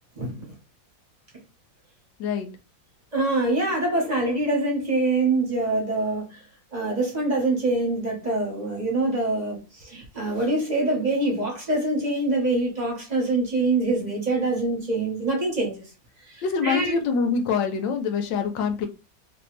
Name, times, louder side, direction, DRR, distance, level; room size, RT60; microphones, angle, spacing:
voice 1, 3.1-6.4 6.7-15.8 16.3-17.0, right 2 dB, 30° right, 0.9 m, -25 dB
voice 2, 16.4-18.9, left 5 dB, 85° left, 1.3 m, -25 dB
3.1 x 2.6 x 3.1 m
omnidirectional pair, 2.0 m